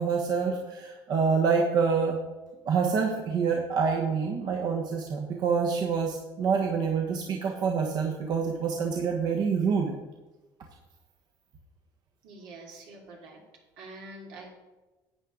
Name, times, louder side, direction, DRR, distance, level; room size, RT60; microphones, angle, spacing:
voice 1, 0.0-2.2 2.6-9.9, right 5 dB, 55° right, 1 dB, 1.2 m, -26 dB
voice 2, 12.2-13.4 13.8-14.5, right 2 dB, 85° right, -1 dB, 3.0 m, -45 dB
12.0 x 8.4 x 3.9 m, 1.1 s
cardioid pair, 125°, 8 cm